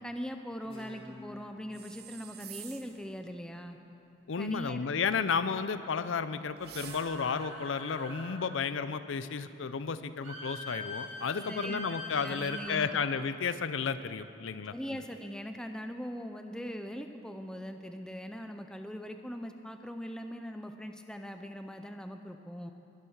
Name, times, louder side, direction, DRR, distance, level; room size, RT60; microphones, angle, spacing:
voice 1, 0.0-3.8 4.4-4.8 11.5-11.8 12.2-12.9 14.7-22.7, equal, 5° left, 6 dB, 0.5 m, -41 dB
Guitar, 0.6-3.9, equal, 30° left, 2.7 m, -53 dB
sound 1, 1.7-3.1 6.6-7.4, right 10 dB, 50° right, 0.7 m, -48 dB
voice 2, 4.3-15.0, left 5 dB, 75° left, 13 dB, 0.5 m, -33 dB
sound 2, 6.7-8.4 10.2-12.8, equal, 35° right, 3.3 m, -43 dB
21.5 x 7.5 x 6.5 m, 2.7 s
head